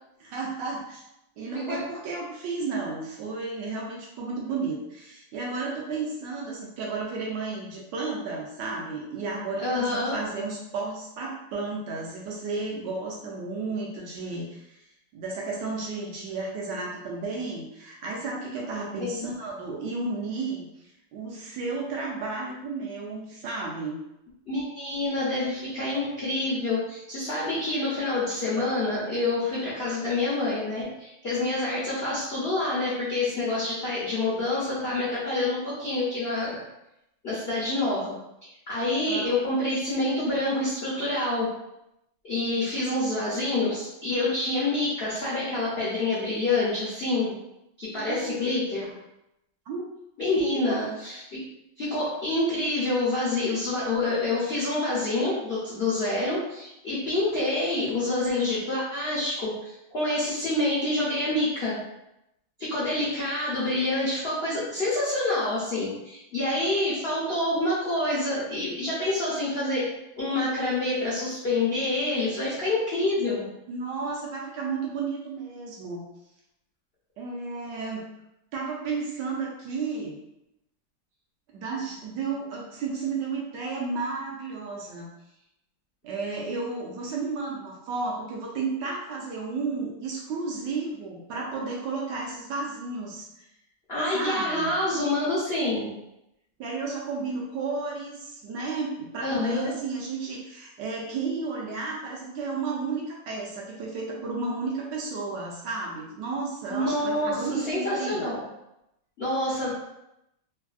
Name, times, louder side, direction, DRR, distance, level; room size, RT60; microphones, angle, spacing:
voice 1, 0.2-1.0 1.4-14.8 15.1-20.7 21.1-24.0 39.0-39.3 47.9-48.4 48.8-48.9 49.7-49.8 50.3-50.9 73.7-76.0 77.2-78.1 78.5-80.2 81.5-85.1 86.0-93.3 94.1-94.7 96.6-108.2, right 4 dB, 75° right, -2 dB, 1.1 m, -33 dB
voice 2, 9.6-10.2 19.0-19.3 24.5-36.6 37.2-38.1 38.4-41.5 42.2-47.3 47.8-48.9 50.2-51.4 51.8-61.8 62.6-69.9 70.2-73.5 93.9-95.9 99.2-99.7 106.7-108.4 109.2-109.7, left 2 dB, 65° left, -9 dB, 0.6 m, -27 dB
3.4 x 2.3 x 2.4 m, 0.85 s
omnidirectional pair, 2.1 m